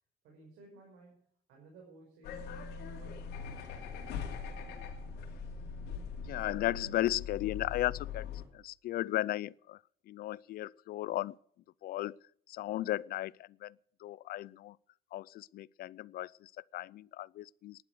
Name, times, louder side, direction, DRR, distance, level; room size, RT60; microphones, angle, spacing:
voice 1, 0.2-2.5 3.0-4.8, right 3 dB, 85° right, 5.6 m, -58 dB
sound 1, 2.2-8.4, left 6 dB, 80° left, 3.0 m, -41 dB
voice 2, 6.3-8.3 8.5-9.8 10.1-11.4 11.8-12.2 12.5-13.7 14.0-14.8 15.1-17.8, left 15 dB, 65° left, 0.4 m, -35 dB
11.5 x 10.5 x 6.5 m
cardioid pair, 110°, 17 cm